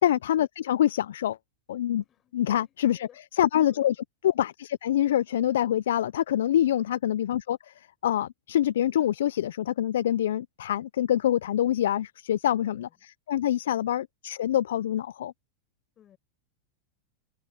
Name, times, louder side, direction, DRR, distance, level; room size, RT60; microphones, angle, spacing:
voice 1, 0.0-1.4 1.7-2.0 2.3-3.1 3.4-4.0 4.2-15.3, left 11 dB, 75° left, 0.5 m, -25 dB
voice 2, 2.0-3.2 3.7-4.0 6.6-6.9 12.5-12.9 15.9-16.2, left 10 dB, 35° left, 6.9 m, -59 dB
hypercardioid pair, 100°, 0 cm